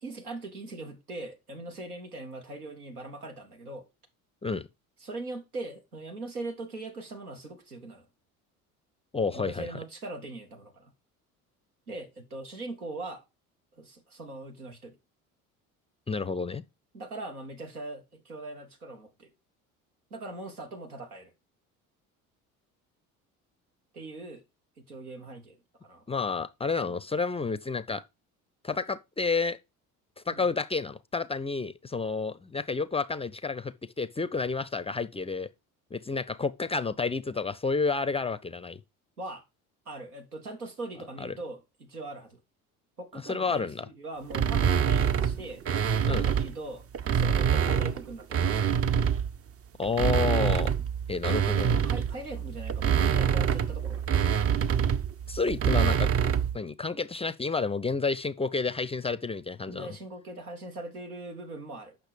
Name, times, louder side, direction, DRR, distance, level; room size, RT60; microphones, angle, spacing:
voice 1, 0.0-3.9 5.0-8.1 9.3-10.9 11.9-13.2 13.7-15.0 16.9-19.3 20.1-21.3 23.9-24.4 24.8-26.0 30.3-30.4 39.2-39.4 39.9-42.4 43.0-45.6 46.1-48.7 51.7-54.1 59.7-62.0, right 2 dB, 85° right, 2.0 m, -41 dB
voice 2, 9.1-9.7 16.1-16.6 26.1-28.0 28.6-29.6 30.3-35.5 35.9-38.8 41.2-41.3 43.2-43.8 46.0-46.3 49.8-50.7 51.1-51.8 55.3-56.1 56.5-59.9, left 4 dB, 15° left, 0.5 m, -30 dB
sound 1, 44.3-46.5 46.9-49.4 49.8-56.6, right 8 dB, 30° right, 0.7 m, -26 dB
8.3 x 6.0 x 5.0 m
figure-of-eight pair, 60°, 43 cm